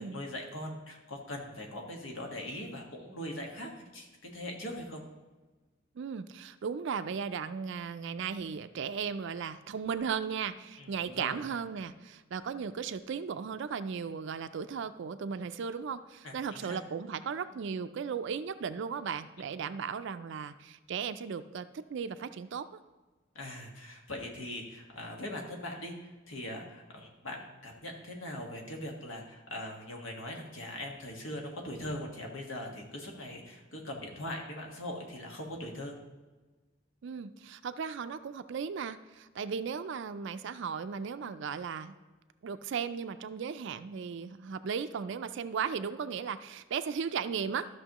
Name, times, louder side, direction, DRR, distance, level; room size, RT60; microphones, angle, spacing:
voice 1, 0.0-4.1 4.3-5.0 10.8-11.4 16.2-16.8 23.3-35.9, left 1 dB, 75° left, 1 dB, 1.6 m, -41 dB
voice 2, 6.0-22.7 37.0-41.9 42.4-47.7, right 6 dB, 65° right, 11 dB, 0.4 m, -36 dB
13.5 x 6.2 x 3.0 m, 1.3 s
head